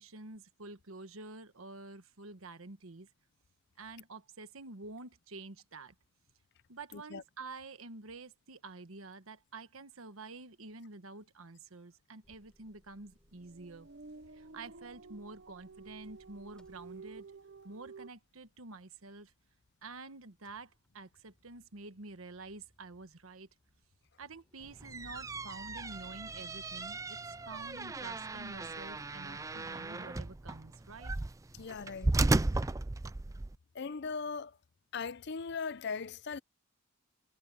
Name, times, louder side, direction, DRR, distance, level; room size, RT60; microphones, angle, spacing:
voice 1, 0.0-3.1 3.8-5.9 6.7-13.9 14.3-17.3 17.6-19.3 19.8-23.5 24.2-31.1, right 3 dB, 85° right, 1.3 m, -49 dB
voice 2, 6.9-7.2 31.6-32.1 33.7-34.6 34.9-36.4, left 5 dB, 55° left, 0.5 m, -39 dB
Motor vehicle (road) / Engine starting / Idling, 12.2-20.0 20.2-30.0, equal, 5° left, 6.7 m, -64 dB
sound 1, 13.3-18.1, right 4 dB, 60° right, 0.8 m, -52 dB
sound 2, 24.7-33.6, right 2 dB, 15° right, 0.4 m, -35 dB
head